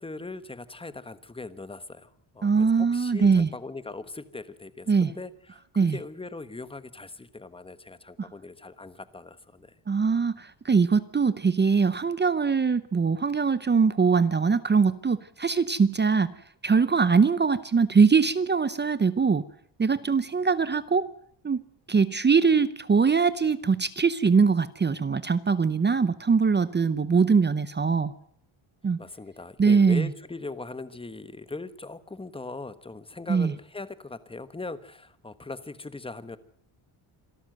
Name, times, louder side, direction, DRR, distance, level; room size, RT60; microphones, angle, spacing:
voice 1, 0.0-9.7 29.0-36.4, left 3 dB, 10° left, 13 dB, 1.2 m, -40 dB
voice 2, 2.4-3.5 4.9-5.1 5.8-6.0 8.2-8.3 9.9-16.3 16.6-19.4 19.8-21.1 21.4-21.6 21.9-28.1 28.8-29.0 29.6-30.1 33.3-33.5, right 5 dB, 20° right, 15 dB, 0.7 m, -22 dB
26.5 x 13.0 x 7.8 m, 0.65 s
cardioid pair, 145°, 49 cm